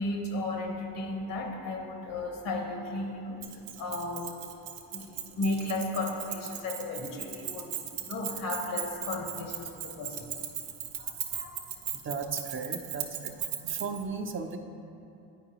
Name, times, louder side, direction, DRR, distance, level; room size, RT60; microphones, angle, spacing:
voice 1, 0.0-4.4 4.9-10.3 11.0-11.6, left 2 dB, 75° left, 2 dB, 1.2 m, -35 dB
Keys jangling, 3.4-14.0, right 10 dB, 85° right, 0.6 m, -38 dB
voice 2, 12.0-13.4 13.6-14.6, right 5 dB, 35° right, 4 dB, 0.6 m, -35 dB
9.7 x 4.5 x 2.9 m, 2.7 s
supercardioid pair, 75°, 34 cm